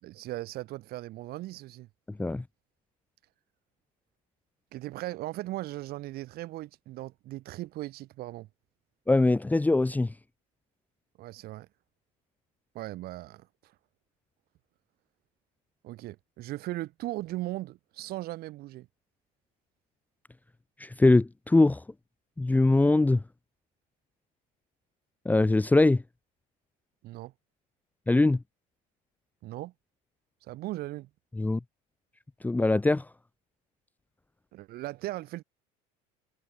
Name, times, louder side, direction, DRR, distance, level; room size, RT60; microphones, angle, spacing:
voice 1, 0.0-1.9 4.7-8.5 11.2-11.7 12.7-13.7 15.8-18.9 27.0-27.3 29.4-29.7 30.4-31.1 34.5-35.4, right 17 dB, 60° right, 7.6 m, -38 dB
voice 2, 9.1-10.1 20.8-21.8 22.4-23.2 25.2-26.0 28.1-28.4 31.4-31.6 32.4-33.0, left 2 dB, 10° left, 1.2 m, -22 dB
supercardioid pair, 110°, 18 cm